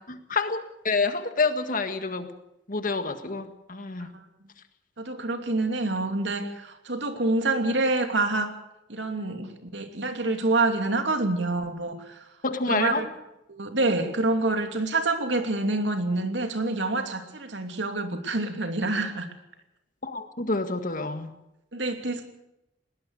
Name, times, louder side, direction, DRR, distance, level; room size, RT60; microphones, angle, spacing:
voice 1, 0.0-2.3 2.7-4.1 12.4-13.0 20.0-21.3, left 3 dB, 50° left, 8 dB, 1.8 m, -28 dB
voice 2, 5.0-8.6 8.9-12.2 12.7-13.1 13.5-19.3 21.7-22.2, right 2 dB, 80° right, 6 dB, 2.8 m, -27 dB
21.5 x 18.5 x 6.6 m, 0.87 s
head